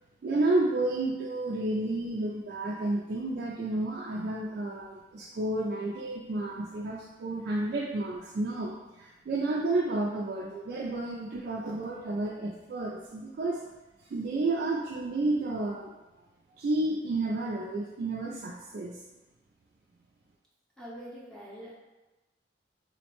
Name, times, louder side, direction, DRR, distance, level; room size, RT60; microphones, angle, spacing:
voice 1, 0.2-13.7 14.0-15.9 16.6-19.0, right 2 dB, 55° right, -3 dB, 0.3 m, -31 dB
voice 2, 20.8-21.8, equal, 5° left, -7 dB, 0.6 m, -44 dB
3.8 x 2.1 x 2.9 m, 1.1 s
head